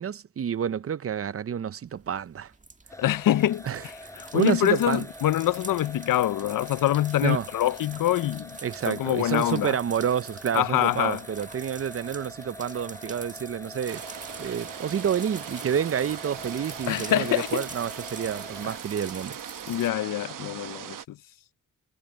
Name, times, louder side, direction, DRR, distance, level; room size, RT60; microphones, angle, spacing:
voice 1, 0.0-2.5 3.7-5.1 7.2-7.5 8.6-14.0 14.4-19.4, right 8 dB, 45° right, 0.5 m, -29 dB
sound 1, 1.9-19.9, right 3 dB, 25° right, 1.8 m, -45 dB
sound 2, 2.9-18.8, left 1 dB, 10° left, 7.9 m, -45 dB
voice 2, 3.0-8.6 8.9-9.8 10.5-11.3 16.9-17.6 19.7-21.2, left 13 dB, 90° left, 0.6 m, -25 dB
sound 3, 13.9-21.1, right 9 dB, 80° right, 1.1 m, -40 dB
cardioid pair, 80°, 32 cm